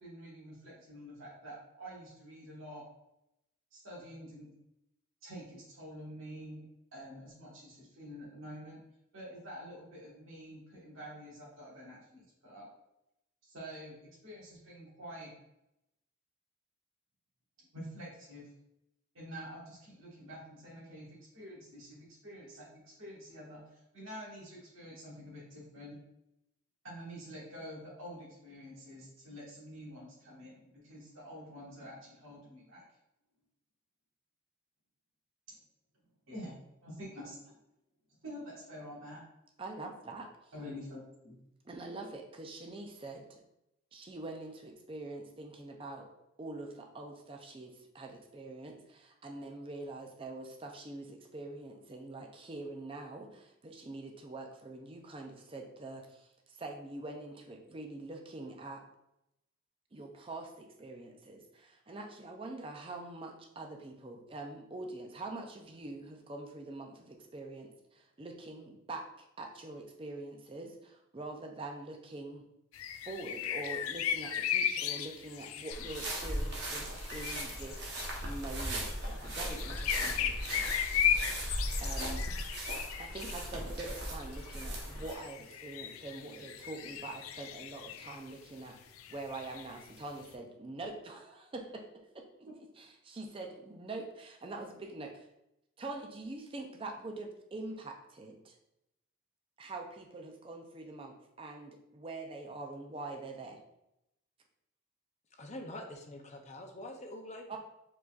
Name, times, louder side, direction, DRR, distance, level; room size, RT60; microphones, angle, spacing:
voice 1, 0.0-2.9 3.7-4.5 5.2-6.6 6.9-8.8 9.1-12.7 13.4-15.3 17.7-18.5 19.1-26.0 26.8-32.8 35.5-35.6 36.3-37.5 38.2-39.2 40.5-41.3 82.3-82.5 92.5-92.6, equal, 70° right, -5 dB, 1.6 m, -48 dB
voice 2, 39.6-40.3 41.6-43.4 43.9-46.1 46.4-58.8 59.9-72.4 73.0-78.0 78.2-81.1 81.8-82.2 83.0-88.8 89.1-92.3 92.8-95.3 95.8-98.5 99.6-103.6 107.5-107.6, right 2 dB, 25° right, 3 dB, 0.4 m, -44 dB
sound 1, 72.7-88.3 88.7-90.3, left 9 dB, 90° left, 0.4 m, -37 dB
sound 2, 75.7-85.1, right 1 dB, 50° right, 1.0 m, -38 dB
voice 3, 105.3-107.5, left 1 dB, 35° left, 3 dB, 0.5 m, -45 dB
4.8 x 3.9 x 2.4 m, 0.85 s
head